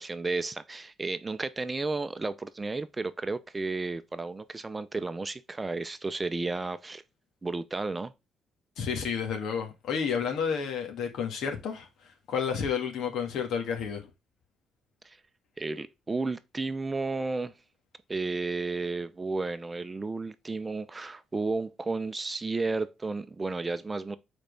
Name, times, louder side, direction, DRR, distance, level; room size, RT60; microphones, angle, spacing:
voice 1, 0.0-7.0 7.4-8.1 15.0-15.2 15.6-17.5 18.1-24.2, right 3 dB, 20° right, 0.6 m, -32 dB
voice 2, 8.8-14.1, left 7 dB, 75° left, 1.9 m, -31 dB
5.1 x 4.5 x 5.2 m
cardioid pair, 90°, 0 cm